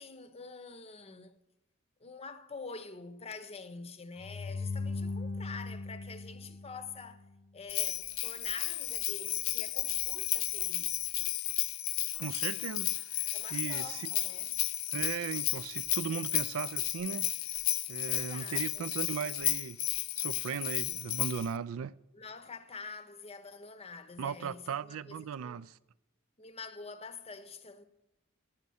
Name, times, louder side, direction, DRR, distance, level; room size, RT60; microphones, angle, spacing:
voice 1, 0.0-1.4 2.0-7.3 7.5-11.0 13.3-14.6 18.1-18.9 22.1-25.7 26.4-27.9, left 4 dB, 30° left, 0.7 m, -46 dB
sound 1, 4.2-7.4, left 3 dB, 90° left, 1.0 m, -39 dB
Bell, 7.7-21.5, left 15 dB, 70° left, 0.5 m, -33 dB
voice 2, 12.1-14.1 14.9-17.3 17.9-19.8 20.2-22.0 24.2-25.8, right 7 dB, 80° right, 0.4 m, -37 dB
11.0 x 7.5 x 6.9 m
head